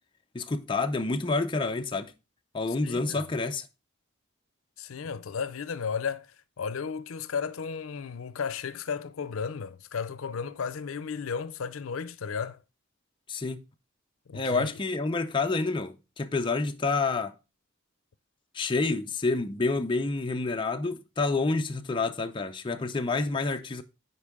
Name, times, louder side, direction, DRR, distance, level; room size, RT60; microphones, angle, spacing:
voice 1, 0.3-2.1 2.5-3.7 13.3-13.6 14.3-17.3 18.5-23.8, left 3 dB, 25° left, 0.5 m, -28 dB
voice 2, 2.8-3.2 4.8-12.6 14.3-14.7, left 6 dB, 85° left, 0.5 m, -34 dB
9.7 x 4.5 x 3.6 m
head